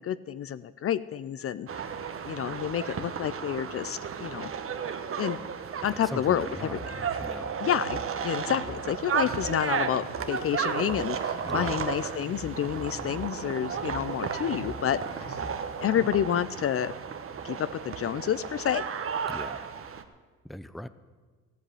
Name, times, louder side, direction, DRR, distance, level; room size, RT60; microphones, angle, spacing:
voice 1, 0.0-1.7 2.2-4.5 5.2-5.4 5.8-6.8 7.6-15.0 15.8-16.9 17.4-18.8, left 10 dB, 50° left, 15 dB, 0.5 m, -29 dB
sound 1, 1.7-20.0, right 6 dB, 45° right, 1.1 m, -34 dB
voice 2, 6.0-6.8 7.2-7.5 11.5-11.8 19.3-19.6 20.4-20.9, left 1 dB, ahead, 13 dB, 0.6 m, -39 dB
Drum kit, 6.4-16.2, equal, 65° left, 3.0 m, -46 dB
sound 2, 10.2-15.9, left 3 dB, 90° left, 2.3 m, -53 dB
14.0 x 8.1 x 8.5 m, 1.4 s
cardioid pair, 90°, 30 cm